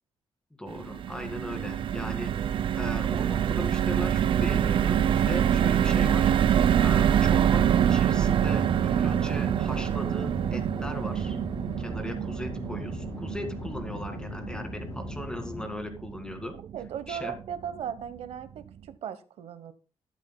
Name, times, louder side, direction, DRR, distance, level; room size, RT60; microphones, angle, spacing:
voice 1, 0.6-6.3 6.8-11.4 11.8-16.5 17.1-17.3, left 1 dB, 10° left, 2.0 m, -38 dB
sound 1, 0.7-17.0 17.4-17.5 17.8-18.0, right 9 dB, 55° right, 0.4 m, -26 dB
sound 2, 8.1-15.7, left 5 dB, 30° left, 0.5 m, -40 dB
voice 2, 16.7-19.7, right 8 dB, 90° right, 1.0 m, -37 dB
13.0 x 9.8 x 2.2 m
cardioid pair, 135°, 10 cm